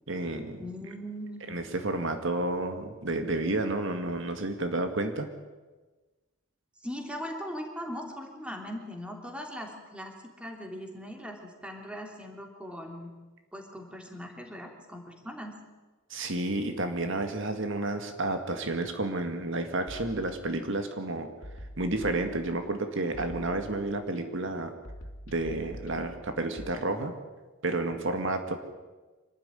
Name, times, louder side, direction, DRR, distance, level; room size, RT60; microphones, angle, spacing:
voice 1, 0.1-0.6 1.5-5.3 16.1-21.3 21.8-24.7 25.3-27.1 27.6-28.6, right 2 dB, 65° right, 6 dB, 2.0 m, -31 dB
voice 2, 0.6-1.5 6.8-13.1 13.5-15.5, equal, 5° right, 2 dB, 3.2 m, -40 dB
sound 1, 19.9-20.8 21.4-22.8 23.1-24.2 24.8-26.7, equal, 80° left, 2.6 m, -45 dB
25.5 x 13.5 x 9.8 m, 1.3 s
head